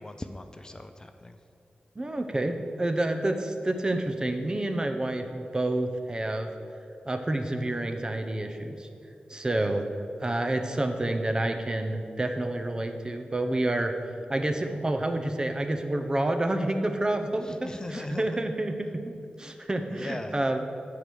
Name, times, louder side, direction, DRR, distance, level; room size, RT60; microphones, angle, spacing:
voice 1, 0.0-1.4 9.6-9.8 17.4-18.3 19.6-20.3, left 2 dB, 25° left, 8 dB, 0.4 m, -40 dB
voice 2, 2.0-6.5 7.1-8.9 9.3-9.9 10.2-14.0 14.3-20.6, right 1 dB, 25° right, 6 dB, 0.7 m, -29 dB
9.0 x 4.7 x 6.9 m, 2.6 s
wide cardioid pair, 115°, 3 cm